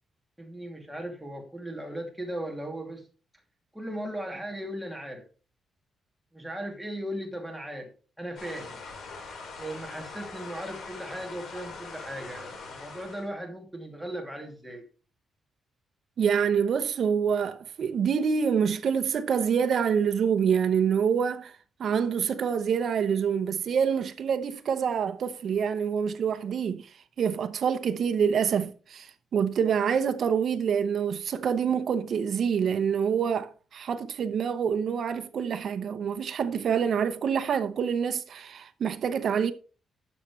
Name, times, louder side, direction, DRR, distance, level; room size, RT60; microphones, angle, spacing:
voice 1, 0.4-3.0 3.7-5.2 6.3-7.9 8.2-8.8 9.6-14.8, right 1 dB, ahead, 2.7 m, -37 dB
sound 1, 8.4-13.3, left 4 dB, 70° left, 4.5 m, -42 dB
voice 2, 16.2-21.5 21.8-26.9 27.2-39.5, right 7 dB, 55° right, 0.9 m, -26 dB
12.5 x 7.4 x 3.3 m
cardioid pair, 150°, 0 cm